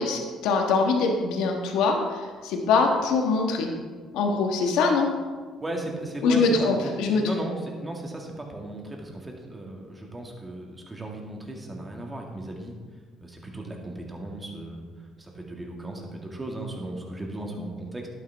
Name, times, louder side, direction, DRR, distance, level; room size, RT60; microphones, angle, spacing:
voice 1, 0.0-3.7 4.1-5.1 6.2-7.2, left 4 dB, 85° left, 2 dB, 1.4 m, -23 dB
voice 2, 5.6-6.5 6.8-12.7 13.2-18.1, right 1 dB, 15° right, 0 dB, 2.0 m, -36 dB
11.0 x 9.4 x 3.5 m, 1.5 s
cardioid pair, 100°, 0 cm